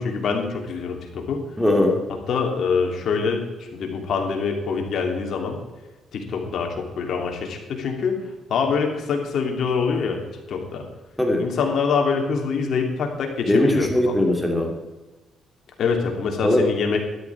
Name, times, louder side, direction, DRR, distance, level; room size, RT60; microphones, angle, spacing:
voice 1, 0.0-1.4 2.3-5.6 6.1-8.2 8.5-10.8 11.4-14.1 15.8-17.0, left 5 dB, 65° left, 2 dB, 3.1 m, -25 dB
voice 2, 1.6-2.0 11.2-11.4 13.5-14.7 16.4-16.6, left 1 dB, 5° left, 1 dB, 2.8 m, -19 dB
12.5 x 12.0 x 4.8 m, 1.2 s
cardioid pair, 90°, 0 cm